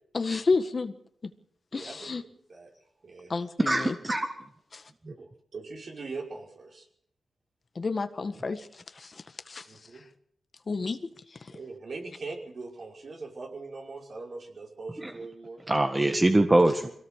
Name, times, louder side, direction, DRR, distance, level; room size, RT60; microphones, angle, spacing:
voice 1, 0.1-0.9 1.7-2.2 3.3-4.0 4.7-4.8 7.8-8.7 9.0-9.7 10.7-11.0, left 4 dB, 45° left, 9 dB, 1.7 m, -30 dB
voice 2, 1.7-2.1 2.5-2.7 3.0-3.3 5.1-6.9 9.7-10.0 11.5-15.6 16.8-16.9, right 3 dB, 60° right, 1 dB, 5.5 m, -41 dB
voice 3, 3.7-4.3 5.1-5.2 15.0-15.1 15.7-16.9, right 1 dB, 20° right, 6 dB, 1.7 m, -23 dB
23.0 x 17.5 x 6.6 m, 0.68 s
cardioid pair, 80°, 0 cm